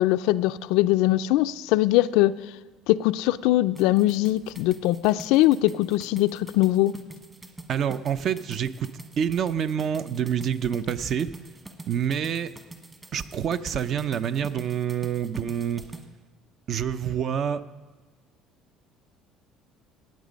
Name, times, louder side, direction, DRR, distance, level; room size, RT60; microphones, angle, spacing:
voice 1, 0.0-2.4 2.9-7.0, left 16 dB, 85° left, 14 dB, 0.4 m, -21 dB
sound 1, 3.8-16.0, right 2 dB, 20° right, 1.3 m, -45 dB
voice 2, 7.7-8.9 9.2-11.3 11.9-12.5 13.1-15.9 16.7-17.6, right 8 dB, 50° right, 13 dB, 0.6 m, -27 dB
18.5 x 7.3 x 5.2 m, 1.4 s
cardioid pair, 120°, 0 cm